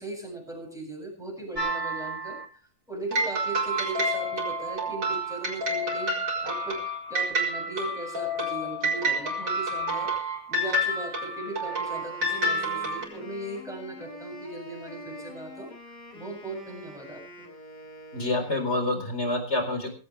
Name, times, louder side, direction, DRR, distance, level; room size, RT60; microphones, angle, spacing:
voice 1, 0.0-2.4 2.9-6.1 6.4-6.8 7.1-10.1 10.5-15.7 16.1-17.5, right 2 dB, ahead, 0 dB, 7.8 m, -38 dB
sound 1, 1.6-2.5 3.1-13.1, right 1 dB, 80° right, 5.4 m, -29 dB
Wind instrument woodwind instrument, 11.5-19.1, left 1 dB, 65° left, 5.1 m, -45 dB
voice 2, 18.1-19.9, left 2 dB, 35° left, 6 dB, 4.6 m, -27 dB
19.0 x 16.5 x 3.4 m, 0.36 s
omnidirectional pair, 1.9 m